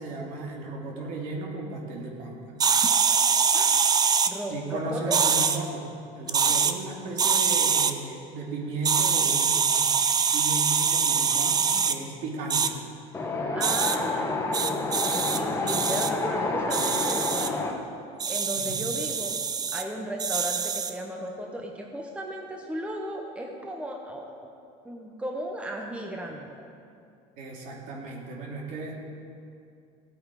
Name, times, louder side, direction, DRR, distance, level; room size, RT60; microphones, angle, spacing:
voice 1, 0.0-2.5 4.5-5.8 6.1-9.9 10.3-12.7 14.2-14.3 18.6-18.8 27.4-28.9, right 2 dB, 65° right, -1 dB, 2.8 m, -35 dB
sound 1, 2.6-4.3 5.1-5.6 6.3-6.7 7.2-7.9 8.8-12.0 12.5-12.7 13.6-14.0 14.5-15.4 15.7-16.1 16.7-17.5 18.2-19.8 20.2-20.9, right 6 dB, 25° right, 0.6 m, -24 dB
voice 2, 4.3-5.2 13.5-17.6 18.3-19.4 19.7-24.5 24.8-26.6, right 1 dB, 10° right, 1 dB, 1.0 m, -35 dB
Wind, 13.1-17.7, left 3 dB, 15° left, 1.4 m, -29 dB
17.0 x 8.6 x 5.0 m, 2.5 s
cardioid pair, 135°, 15 cm